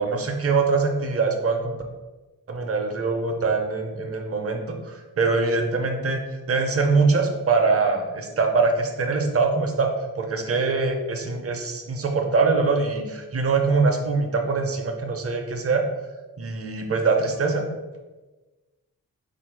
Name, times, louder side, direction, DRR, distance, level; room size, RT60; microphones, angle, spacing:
voice 1, 0.0-1.7 2.5-4.6 4.9-6.2 6.5-9.9 10.2-15.8 16.4-17.7, right 4 dB, 40° right, 3 dB, 0.6 m, -23 dB
4.1 x 2.5 x 4.5 m, 1.2 s
wide cardioid pair, 155°, 36 cm